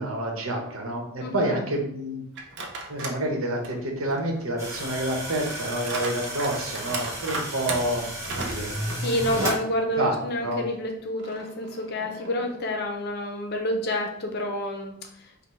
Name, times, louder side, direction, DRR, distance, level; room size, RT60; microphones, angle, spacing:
voice 1, 0.0-2.2 2.9-8.7 10.0-10.6, right 1 dB, 85° right, 2 dB, 0.9 m, -28 dB
voice 2, 1.2-1.6 8.9-15.4, left 1 dB, 50° left, 3 dB, 0.6 m, -29 dB
sound 1, 2.3-3.2 3.6-9.7 10.1-10.2 11.2-12.7, right 3 dB, 55° right, 0.6 m, -37 dB
sound 2, 4.6-9.6, right 1 dB, 15° right, 1.0 m, -33 dB
5.4 x 2.2 x 3.1 m, 0.70 s
head